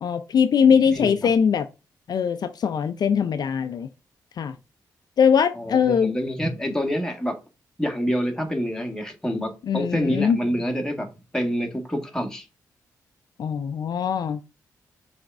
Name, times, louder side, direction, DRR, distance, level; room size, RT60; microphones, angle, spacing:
voice 1, 0.0-1.7 2.1-3.9 4.4-4.5 5.2-6.1 9.7-10.4 13.4-14.4, left 7 dB, 65° left, 0.4 m, -21 dB
voice 2, 0.6-1.2 5.5-7.4 7.8-12.5, equal, 10° left, 1.6 m, -27 dB
6.0 x 3.4 x 2.6 m
cardioid pair, 55°, 7 cm